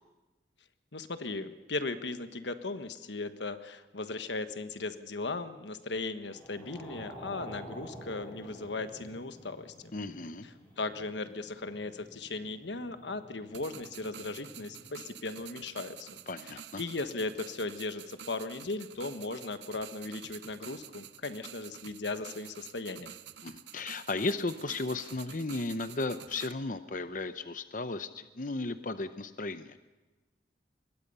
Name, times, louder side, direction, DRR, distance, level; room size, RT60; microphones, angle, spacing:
voice 1, 0.9-9.9 10.8-16.2 16.5-23.2, left 3 dB, 90° left, 10 dB, 1.4 m, -37 dB
sound 1, 6.2-15.0, equal, 10° left, 6.8 m, -50 dB
voice 2, 9.9-10.5 16.3-16.8 23.4-29.8, left 3 dB, 50° left, 11 dB, 0.8 m, -35 dB
sound 2, 13.5-26.5, right 9 dB, 85° right, 0.9 m, -49 dB
25.0 x 21.5 x 5.5 m, 1.2 s
head